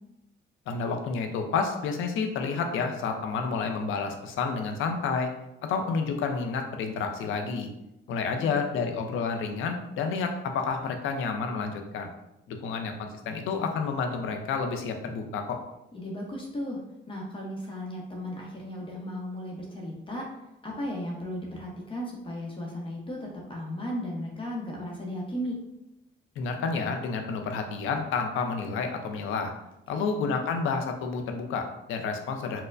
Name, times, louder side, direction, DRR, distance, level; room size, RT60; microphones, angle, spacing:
voice 1, 0.7-5.3 5.6-7.7 8.1-12.1 12.5-15.6 26.4-29.5 29.9-32.6, left 5 dB, 85° left, 5 dB, 0.5 m, -30 dB
voice 2, 8.3-8.6 15.9-20.3 20.6-25.6 29.9-30.2, equal, 25° left, -2 dB, 0.8 m, -35 dB
4.3 x 2.1 x 2.5 m, 0.88 s
cardioid pair, 90°, 20 cm